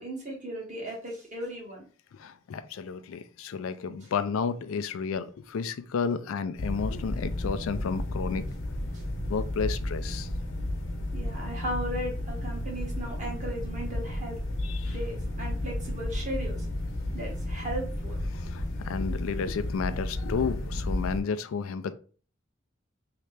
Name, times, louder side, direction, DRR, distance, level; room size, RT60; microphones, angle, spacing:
voice 1, 0.0-1.8 11.1-14.4 14.8-16.7 17.1-18.2, right 1 dB, 35° right, 1.4 m, -36 dB
voice 2, 2.1-8.4 9.3-10.3 14.6-15.0 18.3-21.9, left 5 dB, 80° left, 0.4 m, -32 dB
sound 1, 6.6-21.2, left 1 dB, 65° left, 0.9 m, -33 dB
3.2 x 2.9 x 3.2 m
head